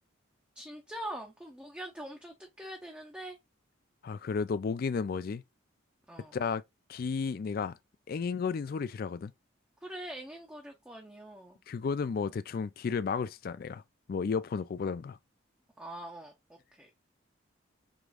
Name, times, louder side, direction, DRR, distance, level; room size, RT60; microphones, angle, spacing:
voice 1, 0.6-3.4 6.1-6.4 9.8-11.6 15.8-16.3 16.7-17.0, right 1 dB, 5° right, 0.5 m, -43 dB
voice 2, 4.0-5.4 6.3-6.6 6.9-7.8 8.1-9.3 11.7-13.8 14.1-15.2, left 5 dB, 45° left, 0.3 m, -33 dB
4.9 x 3.0 x 2.3 m
head